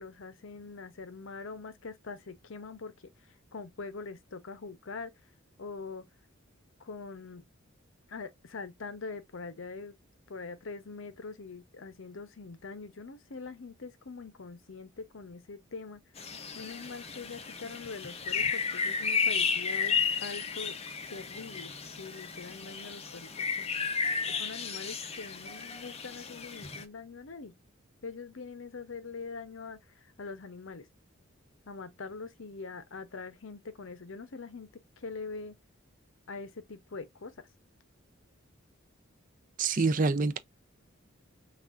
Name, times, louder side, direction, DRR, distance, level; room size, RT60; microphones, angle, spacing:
voice 1, 0.0-2.9 3.2-5.1 5.6-6.0 6.8-7.4 8.1-10.0 10.3-16.0 16.5-20.7 21.1-21.7 22.0-24.0 24.2-27.5 28.0-30.9 31.7-34.7 35.0-35.5 36.3-37.5 39.7-39.9, left 4 dB, 70° left, 0.7 m, -43 dB
sound 1, 16.2-26.8, left 5 dB, 30° left, 0.6 m, -33 dB
voice 2, 39.6-40.4, right 4 dB, 40° right, 0.5 m, -26 dB
5.8 x 2.4 x 2.4 m
head